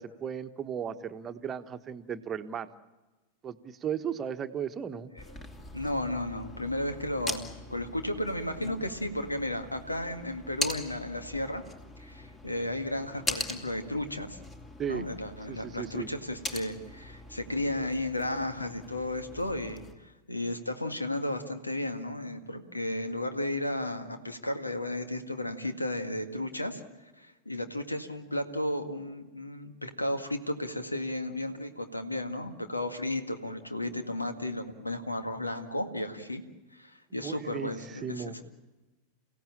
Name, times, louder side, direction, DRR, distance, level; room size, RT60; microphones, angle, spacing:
voice 1, 0.0-2.7 3.4-5.1 8.6-8.8 14.8-15.0 15.5-16.1 37.2-38.4, right 8 dB, 25° right, 9 dB, 1.3 m, -36 dB
sound 1, 5.2-19.9, left 2 dB, 15° left, 2.7 m, -41 dB
voice 2, 5.7-11.6 12.0-14.4 14.9-26.8 27.2-36.4 36.7-38.4, left 1 dB, 85° left, 7 dB, 2.0 m, -34 dB
30.0 x 17.0 x 8.8 m, 1.2 s
figure-of-eight pair, 90°, 0 cm